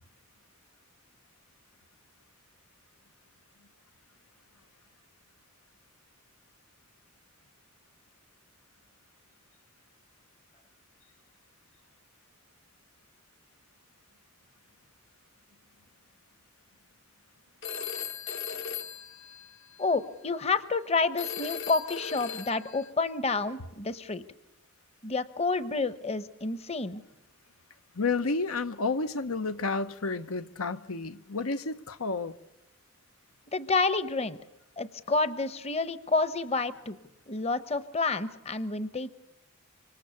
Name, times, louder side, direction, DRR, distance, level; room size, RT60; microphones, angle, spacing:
Telephone, 17.6-20.0 21.2-22.9, left 7 dB, 65° left, 1.3 m, -38 dB
voice 1, 19.8-24.2 25.0-27.0 33.5-34.4 34.8-37.0 37.3-39.1, left 3 dB, 30° left, 0.9 m, -29 dB
voice 2, 27.9-32.3, left 3 dB, 90° left, 1.1 m, -31 dB
26.0 x 25.5 x 7.0 m
head